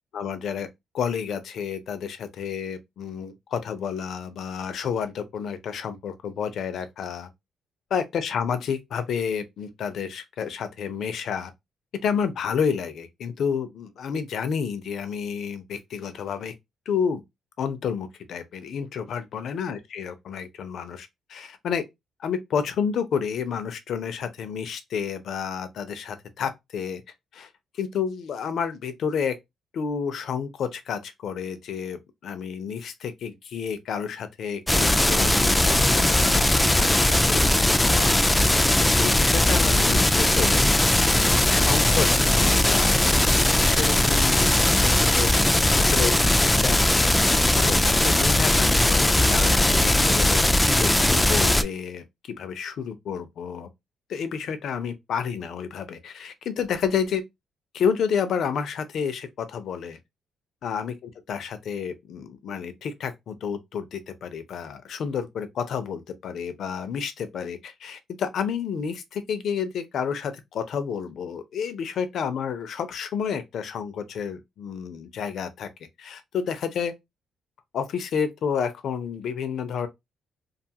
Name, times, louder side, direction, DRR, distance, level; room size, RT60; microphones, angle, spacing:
voice 1, 0.1-0.7 0.9-7.3 7.9-11.5 12.0-16.5 16.9-17.2 17.6-21.8 22.2-27.0 27.3-27.5 27.7-29.4 29.7-36.9 37.3-38.2 39.0-40.6 41.4-46.8 47.3-53.7 54.1-57.2 57.7-60.0 60.6-60.9 61.3-75.7 76.0-76.9 77.7-79.9, left 7 dB, 65° left, 0.5 m, -30 dB
sound 1, 34.7-51.6, left 1 dB, 10° left, 0.3 m, -19 dB
2.5 x 2.4 x 2.7 m
cardioid pair, 90°, 0 cm